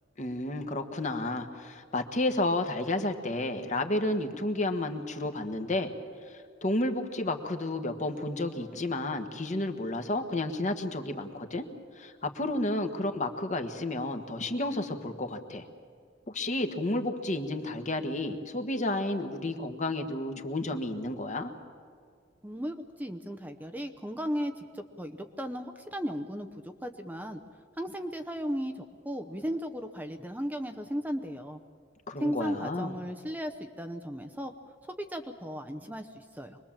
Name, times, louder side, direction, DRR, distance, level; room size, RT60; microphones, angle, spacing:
voice 1, 0.2-5.9 6.3-11.7 12.0-15.7 16.3-21.5 32.1-32.9, left 2 dB, 40° left, 6 dB, 1.4 m, -31 dB
voice 2, 22.4-27.4 27.8-31.6 32.2-34.5 35.0-36.6, equal, 10° right, 6 dB, 0.8 m, -36 dB
25.0 x 20.5 x 7.4 m, 2.1 s
head